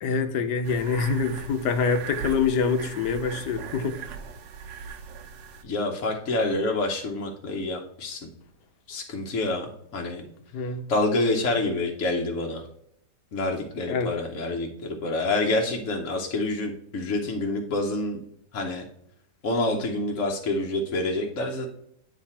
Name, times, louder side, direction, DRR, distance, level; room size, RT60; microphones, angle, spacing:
voice 1, 0.0-4.0 10.5-10.9 13.9-14.1, left 5 dB, 70° left, 8 dB, 1.2 m, -25 dB
sound 1, 0.6-5.6, right 6 dB, 85° right, 1.4 m, -39 dB
voice 2, 5.6-8.3 8.9-10.3 10.9-12.7 13.3-18.2 18.5-18.9 19.4-21.7, left 2 dB, 55° left, 1 dB, 1.0 m, -27 dB
9.3 x 3.3 x 4.2 m, 0.70 s
omnidirectional pair, 1.9 m